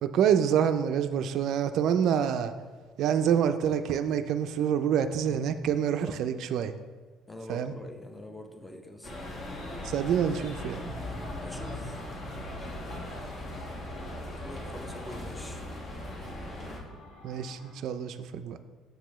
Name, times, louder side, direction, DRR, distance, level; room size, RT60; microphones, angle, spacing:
voice 1, 0.0-2.5 3.0-6.7 7.5-7.7 9.8-10.8 17.2-18.6, right 8 dB, 60° right, 9 dB, 0.3 m, -27 dB
voice 2, 7.3-9.3 11.1-12.0 14.4-15.6, left 1 dB, 10° left, 4 dB, 0.6 m, -45 dB
sound 1, 9.0-16.8, left 1 dB, 40° left, 1.3 m, -38 dB
sound 2, 9.7-17.7, left 2 dB, 85° left, 1.8 m, -52 dB
6.6 x 6.5 x 3.0 m, 1.4 s
cardioid pair, 140°, 0 cm